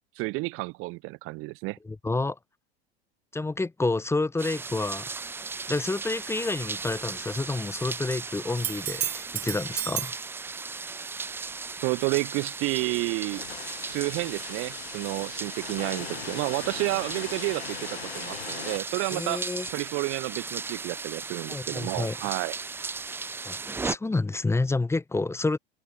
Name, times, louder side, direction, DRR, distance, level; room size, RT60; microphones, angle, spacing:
voice 1, 0.2-1.8 11.8-13.4 13.8-17.9 18.1-19.4 19.7-22.6, right 24 dB, 45° right, 0.9 m, -30 dB
voice 2, 1.8-2.4 3.3-5.1 5.7-10.1 19.1-19.7 21.5-22.2 23.4-25.6, left 3 dB, 10° left, 1.2 m, -29 dB
sound 1, 4.4-23.9, right 4 dB, 10° right, 0.4 m, -37 dB
sound 2, 8.6-10.2 13.9-14.0, right 11 dB, 85° right, 0.6 m, -32 dB
sound 3, 12.7-20.7, left 9 dB, 80° left, 5.9 m, -41 dB
hypercardioid pair, 95°, 30 cm